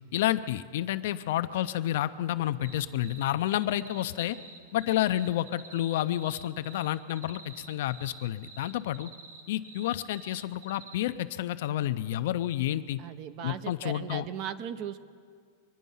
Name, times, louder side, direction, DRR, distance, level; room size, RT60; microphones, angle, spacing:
voice 1, 0.1-4.4 4.7-9.1 9.5-13.0 13.4-14.3, left 13 dB, 55° left, 12 dB, 0.5 m, -30 dB
sound 1, 2.4-3.3 3.6-11.0, right 4 dB, 85° right, 2.2 m, -49 dB
voice 2, 13.0-15.0, right 8 dB, 30° right, 13 dB, 0.6 m, -37 dB
24.0 x 10.0 x 5.5 m, 2.1 s
supercardioid pair, 175°, 0 cm